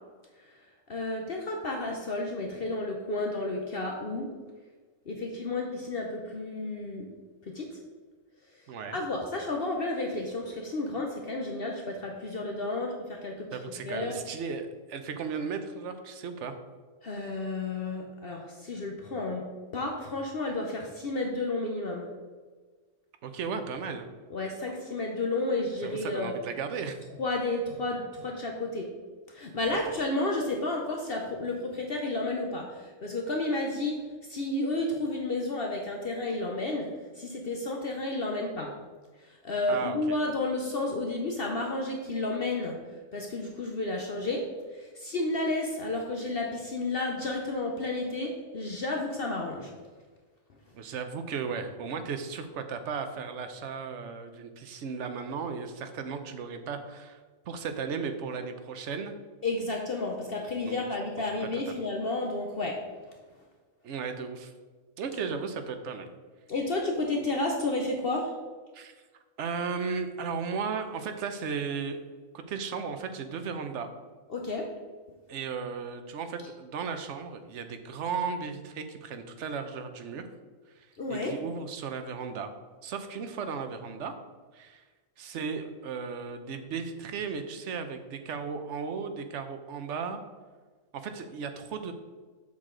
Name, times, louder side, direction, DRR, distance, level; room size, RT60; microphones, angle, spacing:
voice 1, 0.9-4.3 5.1-7.1 7.5-7.7 8.9-13.5 13.8-14.1 17.0-19.4 19.7-22.1 24.3-26.3 27.2-28.9 29.3-34.0 34.3-36.9 37.2-38.7 39.4-42.8 43.1-44.4 44.8-49.7 59.4-62.8 66.5-68.3 74.3-74.7 81.0-81.3, left 2 dB, 50° left, 1 dB, 0.9 m, -31 dB
voice 2, 8.7-9.0 13.5-16.6 23.2-24.1 25.8-27.0 29.7-29.8 39.7-40.2 50.7-57.2 57.5-59.1 60.6-60.8 61.4-61.8 63.8-64.5 65.0-66.1 68.7-68.9 69.4-72.0 72.3-73.9 75.3-80.2 80.8-82.5 82.8-84.1 84.5-84.8 85.2-90.2 90.9-91.9, right 5 dB, 65° right, 7 dB, 1.0 m, -35 dB
7.4 x 6.5 x 3.8 m, 1.4 s
omnidirectional pair, 1.4 m